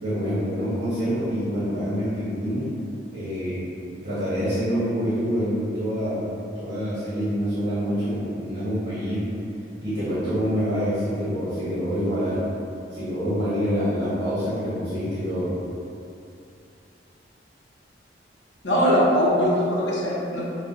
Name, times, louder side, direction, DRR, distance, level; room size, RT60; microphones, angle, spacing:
voice 1, 0.0-2.7 3.1-3.8 4.0-6.2 6.6-9.3 9.8-12.4 12.9-15.6, equal, 60° right, -13 dB, 1.1 m, -26 dB
voice 2, 18.6-20.5, equal, 85° left, -6 dB, 0.9 m, -21 dB
5.6 x 2.2 x 2.6 m, 2.7 s
head